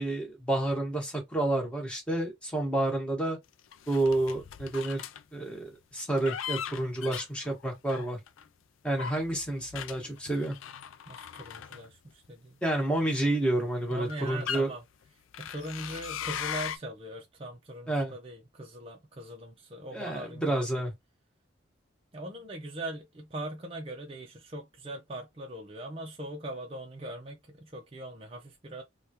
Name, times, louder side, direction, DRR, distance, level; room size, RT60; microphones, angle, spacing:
voice 1, 0.0-3.4 3.9-5.0 5.3-8.2 8.8-10.5 12.6-14.7 17.9-18.1 19.9-20.9, right 1 dB, 5° left, 1.0 m, -29 dB
sound 1, 3.7-5.2 6.0-8.4 8.9-12.3 13.1-13.3 13.9-14.6 15.3-16.8, left 8 dB, 75° left, 0.4 m, -39 dB
voice 2, 11.1-12.6 13.9-14.8 15.4-20.8 22.1-28.8, right 1 dB, 30° right, 0.5 m, -41 dB
3.4 x 2.3 x 2.8 m
head